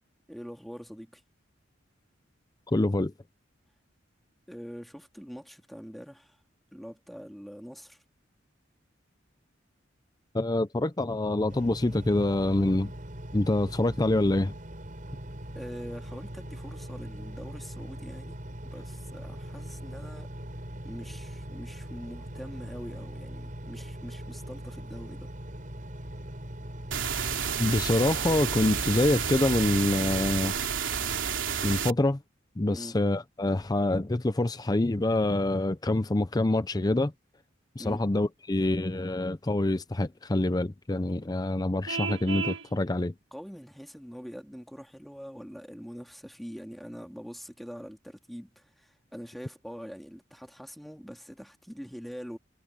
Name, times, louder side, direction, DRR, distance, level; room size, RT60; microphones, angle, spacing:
voice 1, 0.3-1.2 4.5-6.4 6.7-8.0 15.5-18.4 18.7-20.3 20.8-25.3 32.7-33.0 37.8-38.1 43.3-52.4, equal, ahead, 2.1 m, -44 dB
voice 2, 2.7-3.1 10.3-12.9 13.3-14.5 27.6-30.5 31.6-32.2 32.6-37.1 37.8-43.1, left 2 dB, 20° left, 0.6 m, -26 dB
Engine, 11.5-30.4, equal, 45° right, 6.2 m, -41 dB
sound 1, 26.9-31.9, right 7 dB, 85° right, 3.0 m, -30 dB
Vehicle horn car horn honking, 41.9-42.7, right 6 dB, 70° right, 1.5 m, -32 dB
head